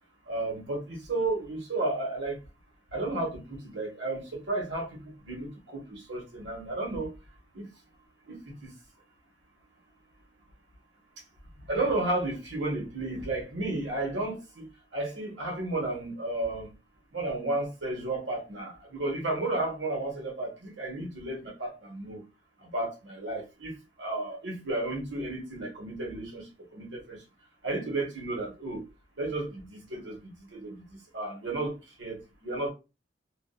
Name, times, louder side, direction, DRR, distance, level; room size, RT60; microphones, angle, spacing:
voice 1, 0.3-2.4 2.9-7.1 7.5-7.7 8.3-8.7 11.7-14.6 14.9-16.7 17.1-22.2 22.6-27.2 27.6-28.8 29.2-30.8 31.1-32.7, right 2 dB, 70° right, 1.3 m, -33 dB
2.6 x 2.6 x 2.3 m
head